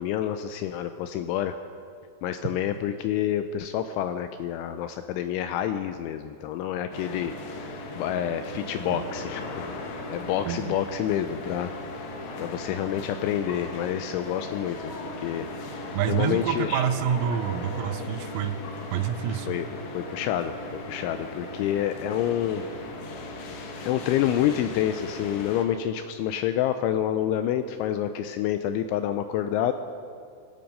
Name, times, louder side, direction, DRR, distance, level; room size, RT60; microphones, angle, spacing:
voice 1, 0.0-1.6 2.2-7.3 8.0-11.7 12.4-14.9 15.2-15.5 15.7-16.8 19.3-19.7 19.9-20.6 20.8-22.6 23.8-29.7, left 11 dB, 85° left, 9 dB, 2.7 m, -28 dB
sound 1, 6.9-25.7, left 2 dB, 70° left, 3.6 m, -38 dB
voice 2, 10.4-10.8 15.9-18.6 18.9-19.5, right 9 dB, 90° right, 10 dB, 3.5 m, -27 dB
25.0 x 10.5 x 5.4 m, 2.3 s
omnidirectional pair, 5.9 m